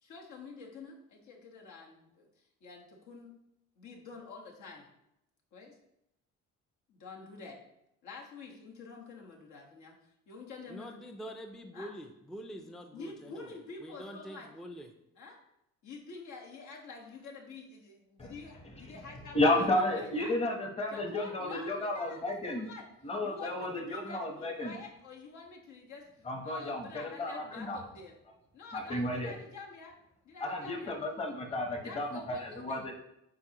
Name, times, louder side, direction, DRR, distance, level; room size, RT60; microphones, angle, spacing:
voice 1, 0.0-3.4 3.8-4.9 5.5-5.8 6.9-7.6 8.0-10.0 10.3-11.0 11.7-11.9 12.9-14.5 15.2-15.4 15.8-20.3 20.9-22.9 23.2-26.1 26.4-28.1 28.5-30.0 30.2-31.0 31.8-32.8, left 4 dB, 75° left, 0 dB, 1.5 m, -48 dB
voice 2, 10.7-14.9, equal, ahead, 5 dB, 0.4 m, -45 dB
voice 3, 19.3-22.7 23.0-24.7 26.3-27.8 28.7-29.4 30.4-32.9, left 1 dB, 20° left, 2 dB, 1.0 m, -32 dB
9.4 x 4.3 x 2.9 m, 0.82 s
cardioid pair, 150°, 29 cm